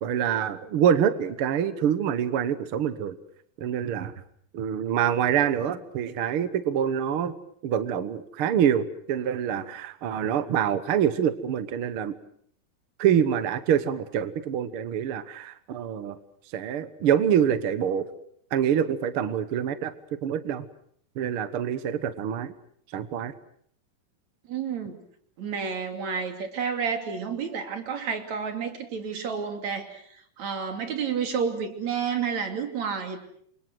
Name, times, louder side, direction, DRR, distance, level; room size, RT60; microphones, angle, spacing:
voice 1, 0.0-3.1 3.6-4.1 4.5-7.3 7.6-12.1 13.0-16.2 16.5-18.1 18.5-19.9 20.2-20.6 21.2-22.5 22.9-23.3, right 9 dB, 70° right, 12 dB, 1.3 m, -25 dB
voice 2, 24.5-25.0 25.4-33.2, right 6 dB, 50° right, 6 dB, 3.9 m, -30 dB
28.5 x 25.0 x 6.2 m, 0.64 s
omnidirectional pair, 4.2 m